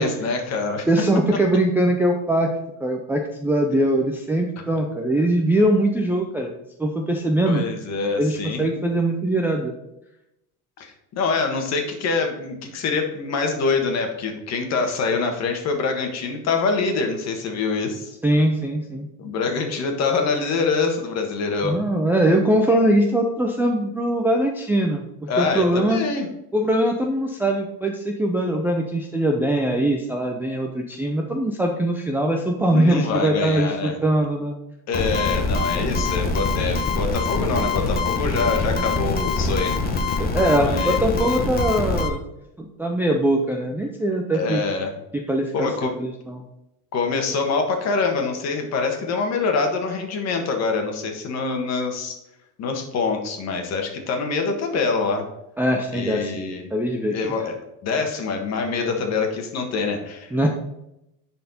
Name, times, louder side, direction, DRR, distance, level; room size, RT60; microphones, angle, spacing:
voice 1, 0.0-0.9 7.5-8.7 10.8-18.1 19.2-21.8 25.3-26.3 32.7-34.0 34.9-39.8 40.6-41.0 44.3-44.9 45.5-46.0 46.9-52.2 52.6-55.3 55.9-56.7 57.1-57.5 57.8-60.5, left 4 dB, 45° left, 4 dB, 1.5 m, -25 dB
voice 2, 0.9-2.5 2.8-6.5 6.8-7.6 8.2-9.7 18.2-19.1 21.6-26.0 26.5-34.6 35.7-35.8 40.3-42.2 42.6-44.6 45.3-45.7 46.0-46.4 55.6-56.3 56.7-57.2 58.8-58.9 60.3-60.5, right 1 dB, 5° right, 0 dB, 0.4 m, -21 dB
sound 1, 34.9-42.1, left 3 dB, 25° left, 0.9 m, -24 dB
10.0 x 4.4 x 4.2 m, 0.87 s
cardioid pair, 155°, 38 cm